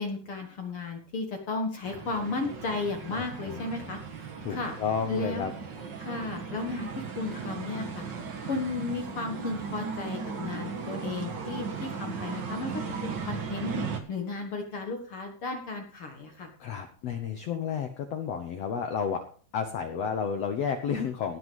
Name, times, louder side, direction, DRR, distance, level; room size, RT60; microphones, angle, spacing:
voice 1, 0.0-4.7 5.1-5.5 6.0-8.0 8.5-13.7 14.1-16.5, left 3 dB, 50° left, 3 dB, 1.7 m, -34 dB
sound 1, 1.8-14.0, right 5 dB, 55° right, 1.2 m, -37 dB
voice 2, 3.2-3.9 4.4-5.5 12.8-12.9 16.6-19.2 19.5-21.4, left 7 dB, 85° left, 6 dB, 1.4 m, -32 dB
18.0 x 6.2 x 5.3 m, 0.43 s
omnidirectional pair, 4.4 m